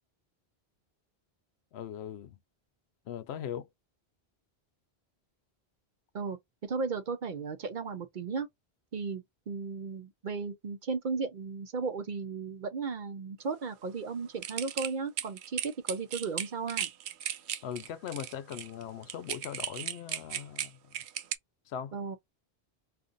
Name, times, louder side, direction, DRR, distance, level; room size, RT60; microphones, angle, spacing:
voice 1, 1.7-2.4 3.1-3.7 17.6-20.8 21.7-21.9, left 9 dB, 80° left, 0.8 m, -40 dB
voice 2, 6.1-8.5 8.9-16.9 21.9-22.2, right 4 dB, 55° right, 0.7 m, -35 dB
sound 1, 14.4-21.3, right 10 dB, 85° right, 0.8 m, -36 dB
2.5 x 2.5 x 3.8 m
omnidirectional pair, 1.1 m